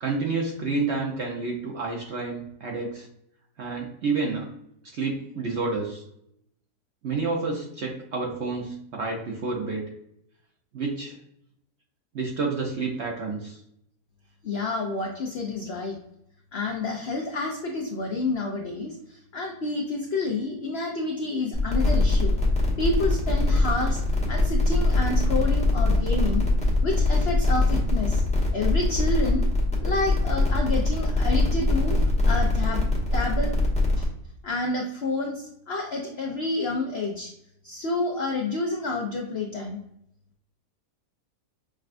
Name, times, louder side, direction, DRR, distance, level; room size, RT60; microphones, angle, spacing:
voice 1, 0.0-3.1 3.6-4.5 4.9-6.0 7.0-9.8 10.7-11.2 12.1-13.6, right 3 dB, 60° right, 0 dB, 0.7 m, -29 dB
voice 2, 14.4-16.0 16.5-22.3 22.8-24.0 24.3-26.5 26.8-28.2 28.5-29.5 29.8-32.0 32.3-32.9 33.1-33.5 34.0-34.1 34.4-37.3 37.6-39.8, left 2 dB, 80° left, 0 dB, 0.5 m, -29 dB
sound 1, 21.5-34.0, left 2 dB, 5° left, 0.6 m, -23 dB
6.1 x 2.2 x 2.4 m, 0.74 s
omnidirectional pair, 1.7 m